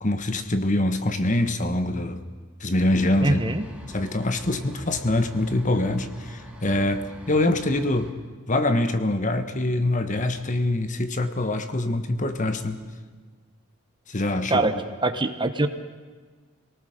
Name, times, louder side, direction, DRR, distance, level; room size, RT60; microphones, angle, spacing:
voice 1, 0.0-2.2 2.6-3.4 3.9-8.1 8.5-12.8 14.1-14.7, left 1 dB, 35° left, 8 dB, 1.4 m, -24 dB
sound 1, 2.9-8.1, equal, 5° right, 3.5 m, -44 dB
voice 2, 3.2-3.6 14.5-14.7 15.0-15.7, right 2 dB, 20° right, 8 dB, 1.0 m, -23 dB
27.0 x 18.5 x 6.7 m, 1.5 s
head